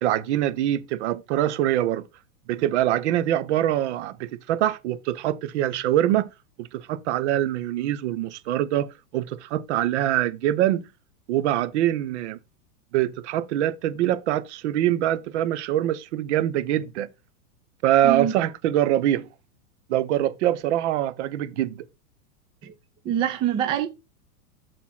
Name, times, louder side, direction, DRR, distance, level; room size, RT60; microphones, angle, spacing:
voice 1, 0.0-2.1 2.5-6.3 6.6-10.8 11.3-12.4 12.9-17.1 17.8-19.3 19.9-21.9, right 12 dB, 50° right, 0.9 m, -24 dB
voice 2, 18.0-18.4 22.6-22.7 23.0-23.9, right 10 dB, 10° right, 0.4 m, -24 dB
6.9 x 4.4 x 5.6 m
supercardioid pair, 150°, 46 cm